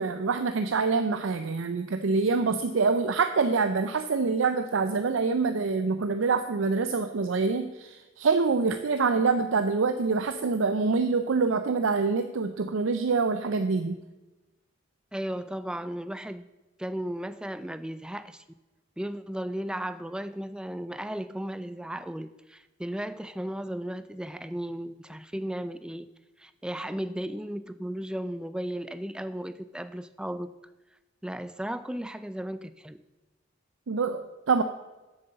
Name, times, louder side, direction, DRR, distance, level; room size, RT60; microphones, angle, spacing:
voice 1, 0.0-14.0 33.9-34.6, right 4 dB, 80° right, 9 dB, 0.5 m, -26 dB
voice 2, 15.1-16.5 16.8-18.4 19.0-26.1 26.4-30.5 31.2-33.0, right 1 dB, 5° right, 13 dB, 0.3 m, -35 dB
7.8 x 7.4 x 6.9 m, 1.1 s
head